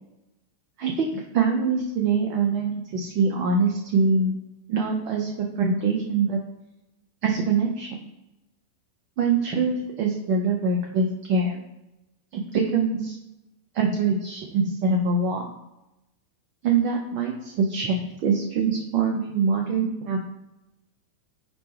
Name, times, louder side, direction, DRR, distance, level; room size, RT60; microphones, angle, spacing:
voice 1, 0.8-4.3 4.7-6.4 7.2-7.9 9.2-11.6 12.3-13.2 13.7-15.5 16.6-20.2, right 4 dB, 40° right, 1 dB, 0.4 m, -24 dB
4.9 x 2.2 x 3.2 m, 0.93 s
figure-of-eight pair, 90°, 0 cm